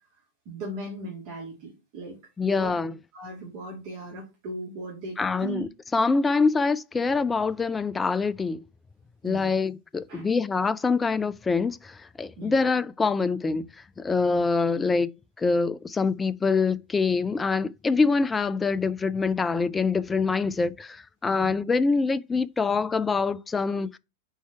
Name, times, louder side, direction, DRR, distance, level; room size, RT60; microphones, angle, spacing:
voice 1, 0.5-2.7 3.1-5.7 9.2-9.6 10.1-10.3 12.4-12.6 14.3-14.4 21.3-21.5, right 2 dB, 45° right, 2.1 m, -38 dB
voice 2, 2.4-2.9 5.2-8.6 9.2-13.7 14.0-15.1 15.4-24.0, left 4 dB, 15° left, 0.3 m, -25 dB
4.5 x 4.2 x 5.6 m
figure-of-eight pair, 90°, 0 cm